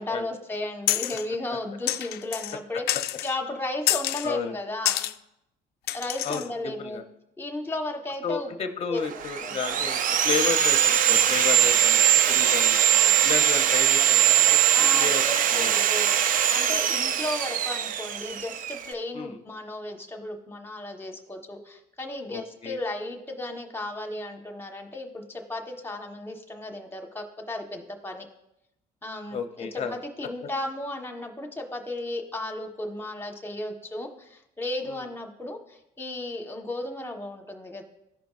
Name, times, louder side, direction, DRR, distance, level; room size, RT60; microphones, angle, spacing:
voice 1, 0.0-5.1 5.9-7.0 7.4-8.5 8.9-9.0 9.4-9.9 12.9-13.2 14.7-28.3 29.0-37.8, left 2 dB, 15° left, 4 dB, 1.2 m, -35 dB
sound 1, 0.9-1.3 1.9-2.6 2.9-3.3 3.9-4.3 4.9-5.1 5.9-6.5, left 14 dB, 70° left, 0.4 m, -27 dB
voice 2, 4.2-4.5 6.2-7.0 8.2-10.0 10.2-12.8 13.2-14.6 14.9-15.2 15.5-15.7 19.1-19.4 22.3-22.8 29.3-30.0 34.9-35.0, left 6 dB, 35° left, 7 dB, 0.7 m, -32 dB
Sawing, 9.1-18.9, right 10 dB, 55° right, 0.5 m, -21 dB
14.0 x 5.2 x 2.5 m, 0.82 s
cardioid pair, 110°, 17 cm